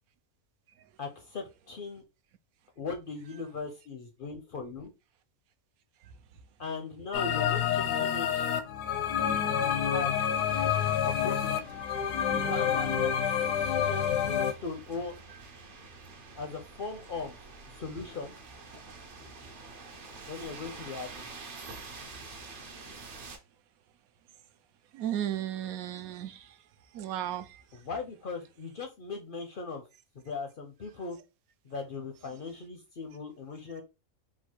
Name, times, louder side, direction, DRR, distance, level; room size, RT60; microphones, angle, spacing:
voice 1, 1.0-2.0 2.8-4.9 6.6-8.5 9.9-10.2 11.0-11.7 12.4-13.3 13.8-15.1 16.4-17.4 17.7-18.3 20.3-21.3 27.7-29.8 30.1-31.2 31.6-33.8, left 4 dB, 60° left, 0.5 m, -38 dB
sound 1, 7.1-14.5, left 8 dB, 85° left, 1.1 m, -28 dB
sound 2, 10.5-23.4, right 3 dB, 50° right, 0.7 m, -47 dB
voice 2, 24.9-27.8, right 11 dB, 75° right, 1.0 m, -36 dB
4.1 x 2.3 x 4.4 m
omnidirectional pair, 1.6 m